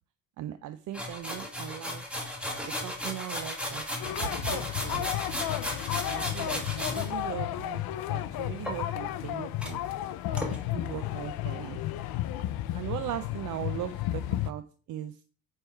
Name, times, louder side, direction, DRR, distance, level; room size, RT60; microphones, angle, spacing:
voice 1, 0.4-2.1 2.7-5.6 6.0-9.8 10.3-11.8 12.7-15.2, right 12 dB, 60° right, 10 dB, 0.5 m, -39 dB
sound 1, 0.9-7.1 8.6-9.3 9.6-9.7 10.4-10.6, left 1 dB, 5° right, 1.2 m, -35 dB
sound 2, 4.0-14.5, left 13 dB, 80° left, 0.6 m, -33 dB
8.6 x 3.6 x 4.5 m, 0.39 s
cardioid pair, 170°, 36 cm